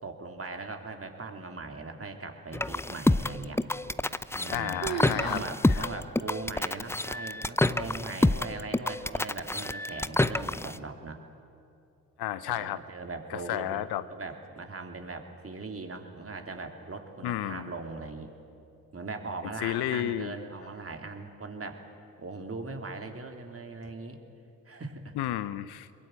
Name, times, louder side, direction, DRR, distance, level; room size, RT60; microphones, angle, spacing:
voice 1, 0.0-3.6 4.3-4.8 5.1-11.2 12.5-13.8 14.1-18.3 18.9-21.8 22.2-24.2 24.6-25.1, right 3 dB, 30° right, 4 dB, 3.3 m, -40 dB
sound 1, 2.5-10.8, left 2 dB, 5° left, 0.6 m, -28 dB
sound 2, 4.0-4.5 4.8-5.5 5.9-6.0 6.7-6.8 7.5-7.9, right 10 dB, 75° right, 1.1 m, -36 dB
voice 2, 4.5-5.4 5.8-5.9 12.2-12.8 13.3-14.0 17.2-17.7 19.6-20.4 25.2-25.9, left 13 dB, 65° left, 15 dB, 0.9 m, -32 dB
22.0 x 22.0 x 9.1 m, 2.5 s
hypercardioid pair, 40°, 42 cm